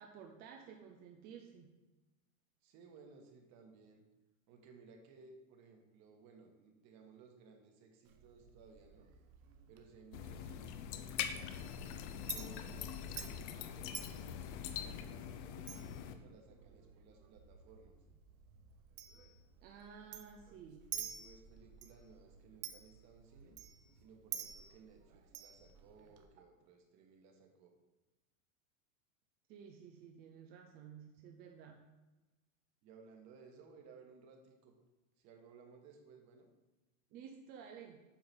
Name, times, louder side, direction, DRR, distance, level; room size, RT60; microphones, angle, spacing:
voice 1, 0.0-1.7 19.6-20.9 29.5-31.9 37.1-38.0, right 7 dB, 25° right, 3 dB, 0.4 m, -53 dB
voice 2, 2.6-4.0 4.5-9.1 9.7-11.8 12.2-14.3 14.8-17.9 20.9-23.6 24.0-27.7 32.8-34.7 35.2-36.5, right 5 dB, 40° right, 3 dB, 1.5 m, -60 dB
Chink clink, 8.0-26.3, right 9 dB, 85° right, 1.1 m, -52 dB
sound 1, 10.1-16.1, left 9 dB, 40° left, 0.5 m, -43 dB
8.6 x 3.9 x 6.1 m, 1.1 s
supercardioid pair, 155°, 41 cm